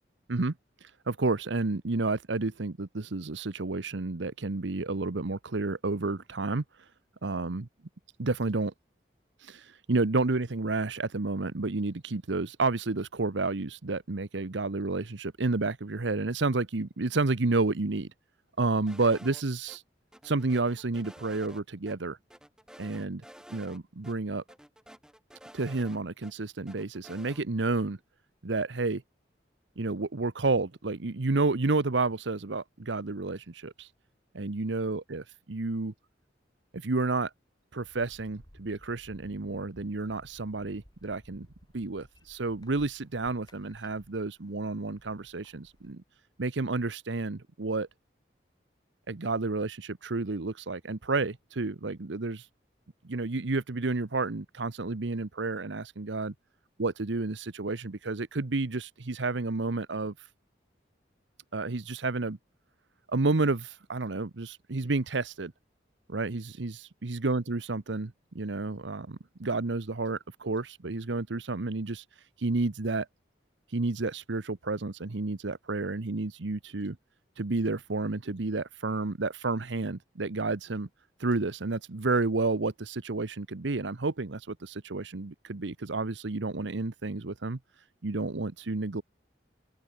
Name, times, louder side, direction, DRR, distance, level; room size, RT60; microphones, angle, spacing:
voice 1, 1.1-6.6 7.2-7.6 8.2-8.7 9.4-18.1 18.6-19.8 20.2-22.2 22.8-23.2 23.5-24.4 25.5-28.0 28.4-29.0 29.8-33.9 34.3-35.9 36.7-37.3 37.7-41.5 41.7-46.0 46.4-47.9 49.1-52.5 53.0-56.3 56.8-60.1 61.5-62.4 63.1-65.5 66.1-72.0 72.4-73.1 73.7-77.0 77.4-80.9 81.2-87.6 88.0-89.0, right 3 dB, 85° right, 1.0 m, -30 dB
sound 1, 18.9-19.8 20.1-21.6 21.9-22.0 22.3-23.8 24.0-24.1 24.5-26.3 26.7-27.4, equal, 5° right, 0.9 m, -51 dB
sound 2, 37.8-45.9, equal, 20° left, 5.3 m, -57 dB
open air
head